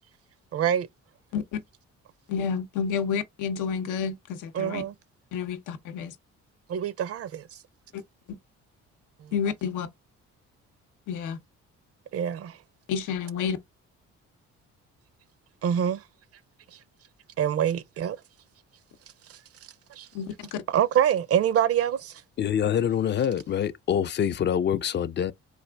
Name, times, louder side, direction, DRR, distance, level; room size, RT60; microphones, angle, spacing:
voice 1, 0.5-0.9 4.6-4.9 6.7-7.4 9.2-9.3 12.1-12.6 15.6-16.0 17.4-18.2 20.0-20.1 20.7-22.1, right 9 dB, 50° right, 0.5 m, -25 dB
voice 2, 2.3-4.8 5.3-6.2 7.9-8.0 8.3-8.4 9.3-9.9 11.1-11.4 12.9-13.6 20.1-20.6, left 7 dB, 90° left, 0.7 m, -30 dB
voice 3, 22.4-25.3, left 9 dB, 35° left, 0.4 m, -25 dB
4.1 x 2.5 x 3.3 m
cardioid pair, 90°, 30 cm